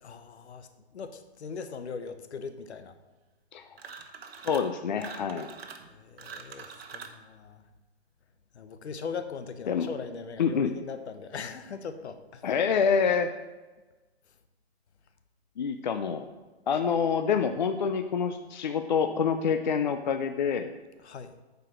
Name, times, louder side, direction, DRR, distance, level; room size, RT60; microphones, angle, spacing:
voice 1, 0.0-3.0 5.9-7.6 8.5-12.4 21.0-21.3, left 5 dB, 80° left, 10 dB, 1.1 m, -40 dB
sound 1, 3.7-4.7 5.0-7.2, right 6 dB, 65° right, 1.1 m, -44 dB
voice 2, 4.4-5.5 9.7-9.9 10.4-10.7 12.4-13.3 15.6-16.3 16.7-20.7, left 6 dB, 45° left, 7 dB, 0.5 m, -27 dB
9.2 x 4.9 x 6.3 m, 1.2 s
hypercardioid pair, 170°, 33 cm